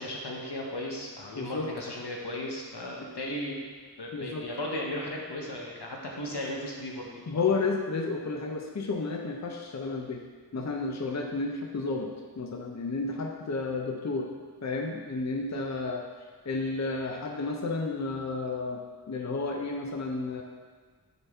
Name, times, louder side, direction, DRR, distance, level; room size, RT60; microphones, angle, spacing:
voice 1, 0.0-3.5 4.0-7.4, left 1 dB, 80° left, -2 dB, 1.0 m, -36 dB
voice 2, 1.4-1.7 3.0-3.1 4.1-4.5 7.3-10.2 10.5-12.1 12.4-14.3 14.6-16.0 16.5-18.8 19.1-20.4, left 3 dB, 45° left, 1 dB, 0.5 m, -31 dB
6.7 x 4.2 x 3.5 m, 1.5 s
wide cardioid pair, 45°, 40 cm